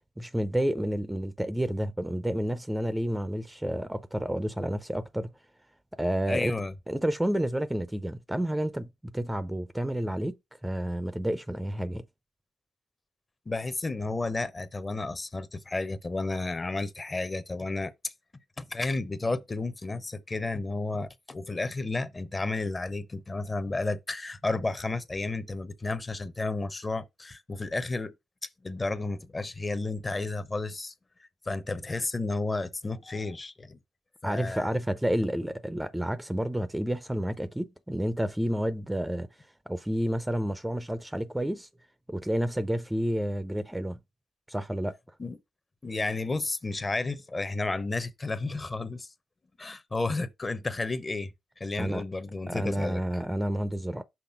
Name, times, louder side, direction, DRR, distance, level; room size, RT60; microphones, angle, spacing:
voice 1, 0.2-5.3 6.0-6.5 6.9-8.9 9.1-10.4 10.6-12.0 34.2-39.3 39.7-41.7 42.1-44.0 44.5-45.0 51.8-52.0 52.5-54.0, right 1 dB, 10° right, 0.5 m, -30 dB
voice 2, 6.3-6.7 13.5-18.1 18.6-28.1 28.6-30.9 31.5-33.8 34.2-34.7 45.2-45.4 45.8-49.1 49.6-53.0, left 3 dB, 25° left, 0.7 m, -32 dB
5.9 x 3.3 x 5.6 m
cardioid pair, 80°, 0 cm